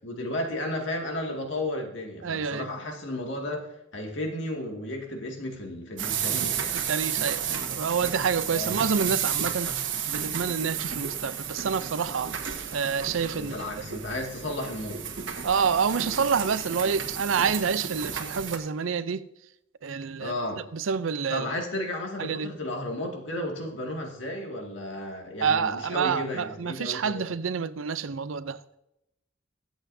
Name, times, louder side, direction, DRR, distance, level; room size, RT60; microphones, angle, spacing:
voice 1, 0.0-6.8 8.5-8.8 13.3-15.0 20.2-20.7 21.3-27.3, left 1 dB, 65° left, 2.1 m, -33 dB
voice 2, 2.2-2.7 6.7-12.3 12.7-13.9 15.4-19.2 19.8-20.4 20.7-21.5 22.2-22.5 25.4-28.8, right 6 dB, 85° right, 0.5 m, -28 dB
sound 1, 6.0-18.6, right 8 dB, 70° right, 1.5 m, -32 dB
23.0 x 8.0 x 2.7 m
head